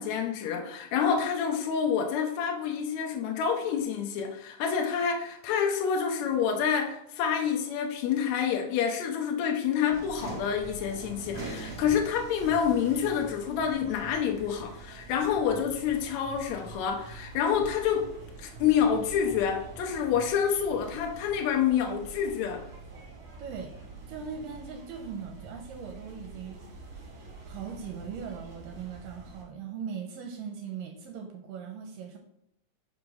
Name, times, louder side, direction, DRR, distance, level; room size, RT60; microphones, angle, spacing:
voice 1, 0.0-18.1 18.4-22.6, left 7 dB, 80° left, 2 dB, 1.6 m, -28 dB
sound 1, 9.9-29.4, right 4 dB, 55° right, 2.2 m, -45 dB
voice 2, 23.4-23.7 24.1-27.0 27.5-32.2, right 6 dB, 80° right, 3 dB, 2.3 m, -40 dB
5.1 x 4.8 x 5.2 m, 0.78 s
omnidirectional pair, 4.0 m